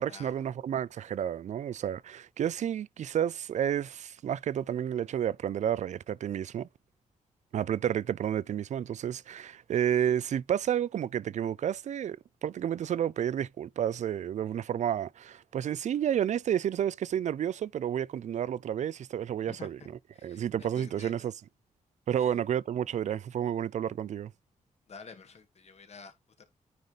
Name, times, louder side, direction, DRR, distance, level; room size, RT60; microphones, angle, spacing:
voice 1, 0.0-6.7 7.5-19.8 20.2-21.3 22.1-24.3, right 9 dB, 60° right, 0.4 m, -31 dB
voice 2, 20.1-21.2 22.2-22.4 24.9-26.5, left 5 dB, 50° left, 1.5 m, -50 dB
9.4 x 3.8 x 3.3 m
wide cardioid pair, 125°, 14 cm